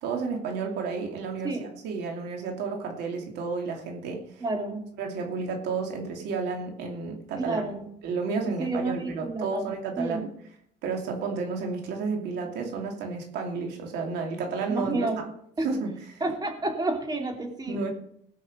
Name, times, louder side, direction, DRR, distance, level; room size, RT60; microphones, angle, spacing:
voice 1, 0.0-4.4 5.0-7.6 8.0-10.3 10.8-15.2 15.6-16.2 17.7-17.9, right 4 dB, 85° right, 2 dB, 2.8 m, -32 dB
voice 2, 4.4-4.8 7.4-7.9 8.6-9.7 10.0-10.2 14.7-15.2 15.6-15.7 16.2-17.8, right 2 dB, 25° right, 3 dB, 2.9 m, -30 dB
18.5 x 6.4 x 6.7 m, 0.68 s
cardioid pair, 110°, 17 cm